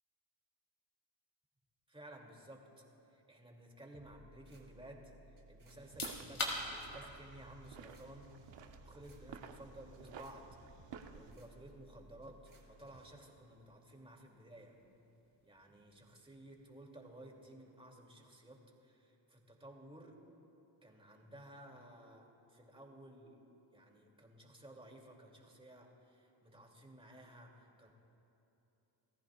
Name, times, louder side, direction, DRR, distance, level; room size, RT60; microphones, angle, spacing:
voice 1, 1.9-2.6 3.1-5.1 5.5-10.5 11.1-14.8 15.4-20.2 20.8-23.4 23.7-27.9, right 1 dB, 10° right, 0 dB, 2.7 m, -55 dB
sound 1, 3.9-13.1, right 1 dB, 40° right, 3.4 m, -61 dB
sound 2, 5.8-18.4, left 2 dB, 45° left, 3.5 m, -50 dB
sound 3, 5.8-11.3, right 7 dB, 65° right, 1.0 m, -53 dB
28.0 x 14.5 x 2.4 m, 2.9 s
supercardioid pair, 65°, 48 cm